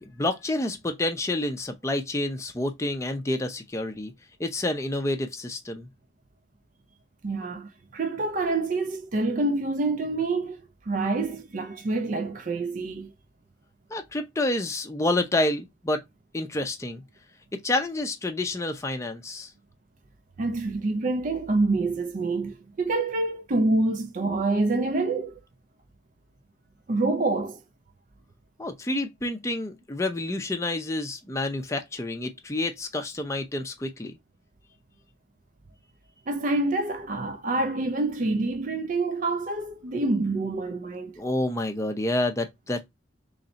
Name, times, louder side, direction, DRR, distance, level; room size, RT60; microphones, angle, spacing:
voice 1, 0.0-4.1 4.4-5.9 13.9-16.0 16.3-17.0 17.6-19.5 28.6-34.1 41.2-42.9, left 2 dB, 15° left, 0.5 m, -28 dB
voice 2, 7.2-10.6 10.8-13.1 20.4-25.4 26.9-27.6 36.3-41.2, right 2 dB, 45° right, 0.4 m, -27 dB
3.2 x 2.7 x 3.9 m
head